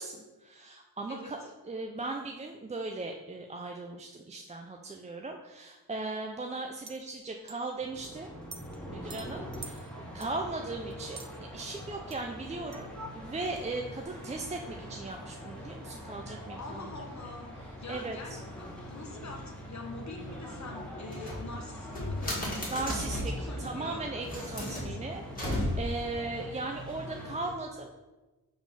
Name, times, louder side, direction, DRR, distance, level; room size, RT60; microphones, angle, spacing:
voice 1, 0.0-1.4 1.6-8.3 8.9-16.9 17.9-18.4 22.7-27.9, right 3 dB, 20° right, 2 dB, 0.3 m, -38 dB
voice 2, 1.1-1.5 16.6-17.5 17.8-24.1 24.6-25.0, left 3 dB, 50° left, 1 dB, 1.0 m, -45 dB
sound 1, 6.9-7.0 7.5-7.6 7.9-8.8 9.1-11.4 11.8-11.9 12.1-12.2 12.7-12.9 13.2-14.1, right 5 dB, 50° right, 0.7 m, -47 dB
sound 2, 7.8-27.5, equal, 5° left, 1.5 m, -44 dB
sound 3, 21.1-23.4 24.1-26.1, left 1 dB, 25° left, 1.9 m, -34 dB
4.8 x 3.8 x 5.4 m, 1.1 s
wide cardioid pair, 130°, 36 cm